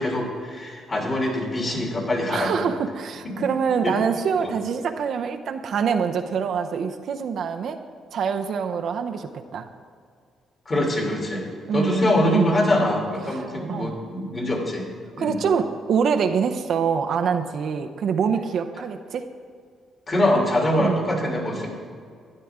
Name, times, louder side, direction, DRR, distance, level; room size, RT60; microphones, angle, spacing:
voice 1, 0.0-2.7 3.2-3.3 3.8-4.0 4.4-4.5 10.7-11.4 11.7-14.8 15.2-15.4 20.1-21.7, left 1 dB, 35° left, -1 dB, 2.9 m, -23 dB
voice 2, 2.3-7.8 8.1-9.7 11.7-12.5 13.3-14.0 15.2-19.3 20.8-21.0, right 6 dB, 65° right, 5 dB, 0.7 m, -25 dB
12.5 x 10.0 x 3.6 m, 2.1 s
cardioid pair, 90°, 0 cm